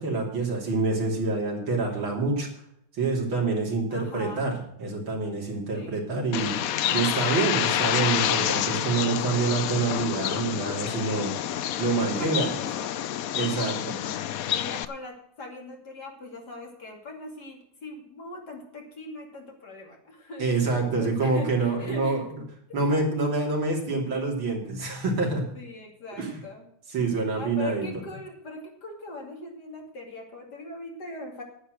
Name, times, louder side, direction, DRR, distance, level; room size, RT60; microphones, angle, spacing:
voice 1, 0.0-2.5 2.9-6.5 6.9-11.3 11.8-12.5 13.3-13.8 20.4-22.2 22.7-25.5 26.2-26.4 26.9-27.9, right 3 dB, 65° right, 0 dB, 3.8 m, -26 dB
voice 2, 3.9-4.5 5.7-6.0 11.9-12.9 13.3-13.7 14.5-22.2 22.7-22.9 25.5-26.7 27.3-31.4, left 2 dB, 50° left, 1 dB, 3.2 m, -41 dB
Bird, 6.3-14.8, left 11 dB, 85° left, 0.7 m, -28 dB
10.5 x 9.9 x 6.3 m, 0.71 s
omnidirectional pair, 2.3 m